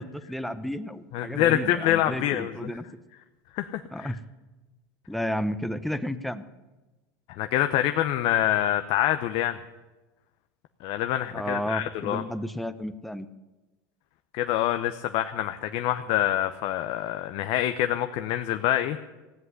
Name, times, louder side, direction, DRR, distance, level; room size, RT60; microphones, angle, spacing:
voice 1, 0.0-2.8 3.9-4.2 5.1-6.4 11.3-13.3, equal, ahead, 11 dB, 0.9 m, -32 dB
voice 2, 1.1-2.7 3.5-4.1 7.3-9.6 10.8-12.2 14.3-19.1, left 12 dB, 60° left, 8 dB, 0.8 m, -26 dB
16.0 x 7.9 x 9.6 m, 1.1 s
supercardioid pair, 100°, 11 cm